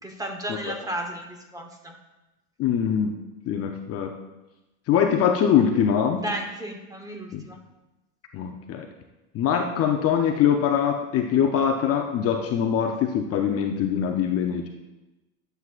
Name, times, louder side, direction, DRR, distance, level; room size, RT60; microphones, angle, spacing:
voice 1, 0.0-1.9 6.2-7.6, right 1 dB, 10° right, 3 dB, 1.1 m, -34 dB
voice 2, 2.6-3.2 3.5-4.1 4.9-6.2 7.3-7.5 8.3-8.9 9.3-14.7, left 8 dB, 35° left, 4 dB, 0.7 m, -23 dB
12.0 x 7.9 x 2.4 m, 1.0 s
supercardioid pair, 115°, 44 cm